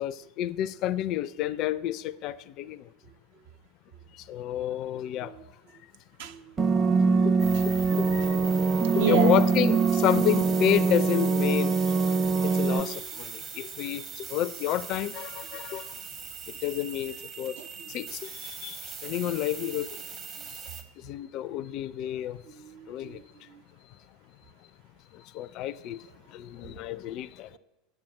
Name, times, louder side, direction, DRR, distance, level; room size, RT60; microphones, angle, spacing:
voice 1, 0.0-2.8 4.3-5.3 7.2-7.3 7.6-8.2 8.9-11.8 12.4-15.8 16.6-17.6 17.9-19.9 21.0-22.4 22.9-23.2 25.3-26.0 26.3-27.5, left 12 dB, 45° left, 0.4 m, -30 dB
voice 2, 6.2-6.7 7.5-7.6 8.5-8.6 8.9-9.4 17.4-18.0 20.4-20.5 22.4-23.6, right 7 dB, 60° right, 0.7 m, -34 dB
sound 1, 6.6-12.8, right 4 dB, 20° right, 0.8 m, -23 dB
sound 2, 7.4-20.8, right 6 dB, 40° right, 1.3 m, -40 dB
9.0 x 7.2 x 8.5 m
figure-of-eight pair, 75°, 0 cm